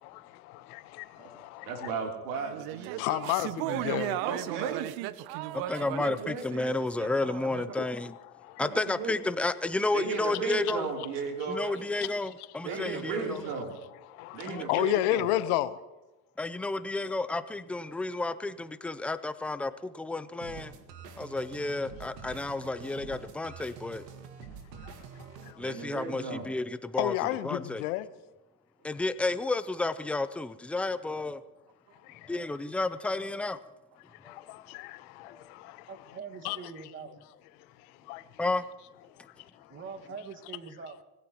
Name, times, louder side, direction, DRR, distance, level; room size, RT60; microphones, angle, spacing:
voice 1, 0.0-1.9 3.0-4.2 7.8-7.9 8.3-8.6 14.1-15.8 24.7-24.9 25.4-25.6 27.0-28.1 32.0-32.3 34.2-35.9 36.4-36.6 38.1-38.2, left 15 dB, 65° left, 1.1 m, -32 dB
voice 2, 1.7-3.0 4.2-4.8 5.7-6.4 7.7-7.8 8.6-9.1 9.9-11.6 12.6-13.7 14.3-15.3 25.6-26.5 31.9-32.0, right 5 dB, 70° right, 3.3 m, -35 dB
sound 1, 2.3-7.7, right 14 dB, 50° right, 0.8 m, -35 dB
voice 3, 5.3-8.2 8.6-10.9 11.5-13.4 14.5-14.8 16.4-20.7 21.2-24.0 25.6-27.1 27.4-27.8 28.8-31.4 32.3-33.6 34.2-34.5 35.3-35.5 38.4-38.7, left 2 dB, 5° left, 0.4 m, -32 dB
voice 4, 11.6-12.0 12.6-13.6 35.9-37.2 39.7-41.0, right 5 dB, 25° right, 1.8 m, -43 dB
sound 2, 20.4-25.5, right 6 dB, 85° right, 1.9 m, -46 dB
25.5 x 16.0 x 3.0 m
hypercardioid pair, 100°, 47 cm